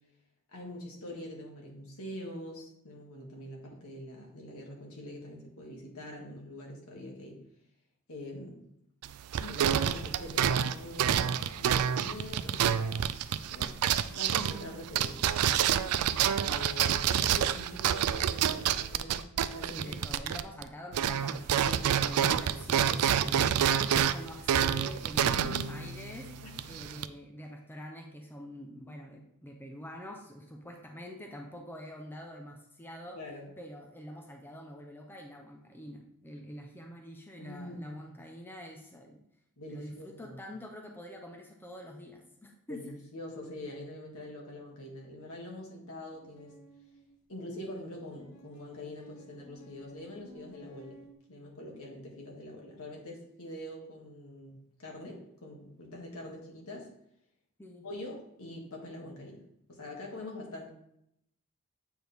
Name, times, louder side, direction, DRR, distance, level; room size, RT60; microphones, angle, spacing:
voice 1, 0.5-7.4 8.1-8.6 9.4-12.9 13.5-13.8 14.1-19.3 19.5-20.2 21.6-22.3 25.3-25.7 26.4-26.6 33.2-33.5 37.4-38.2 39.6-40.4 42.7-46.6 47.3-51.0 51.3-56.9 57.8-59.4 59.7-60.7, left 1 dB, 70° left, -1 dB, 1.8 m, -44 dB
sound 1, 9.0-20.7 20.9-27.1, right 9 dB, 80° right, 0.4 m, -28 dB
voice 2, 19.7-23.6 23.9-33.2 33.6-39.2 39.7-42.8 57.6-57.9, equal, 10° left, 1 dB, 0.6 m, -46 dB
sound 2, 46.1-47.2 48.1-51.1, equal, 90° left, 1.2 m, -55 dB
7.9 x 4.5 x 3.5 m, 0.75 s
head